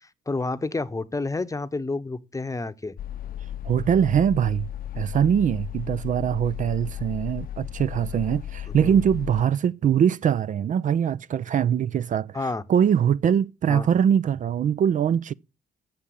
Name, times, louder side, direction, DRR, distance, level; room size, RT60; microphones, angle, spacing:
voice 1, 0.3-3.0 8.8-9.0 12.3-12.6 13.7-13.9, left 3 dB, 20° left, 0.9 m, -29 dB
sound 1, 3.0-9.4, left 11 dB, 55° left, 0.7 m, -35 dB
voice 2, 3.6-4.7 4.9-15.3, right 8 dB, 45° right, 0.5 m, -22 dB
7.5 x 7.3 x 8.4 m
hypercardioid pair, 50°, 18 cm